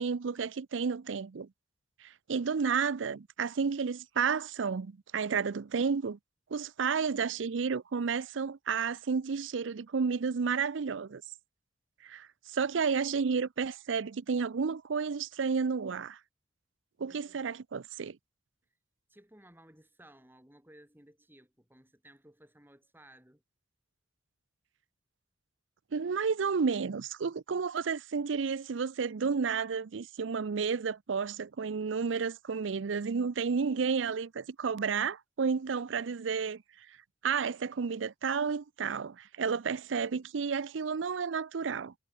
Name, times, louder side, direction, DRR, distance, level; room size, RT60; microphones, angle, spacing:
voice 1, 0.0-1.5 2.0-6.2 6.5-11.2 12.0-16.2 17.0-18.2 25.9-36.6 37.2-41.9, right 5 dB, 90° right, 0.5 m, -31 dB
voice 2, 17.1-17.5 19.1-23.4, right 1 dB, 10° right, 7.0 m, -58 dB
head